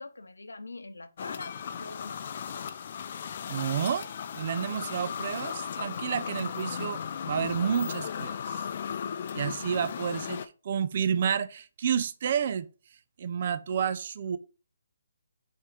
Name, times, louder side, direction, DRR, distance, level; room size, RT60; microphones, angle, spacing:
voice 1, 0.0-2.2, left 3 dB, 85° left, 0.8 m, -43 dB
sound 1, 1.2-10.5, left 7 dB, 45° left, 0.5 m, -36 dB
voice 2, 3.5-4.1 4.3-7.0 7.2-8.6 9.3-12.7 13.2-14.4, right 8 dB, 45° right, 0.5 m, -30 dB
5.3 x 3.6 x 4.8 m
figure-of-eight pair, 145°, 0 cm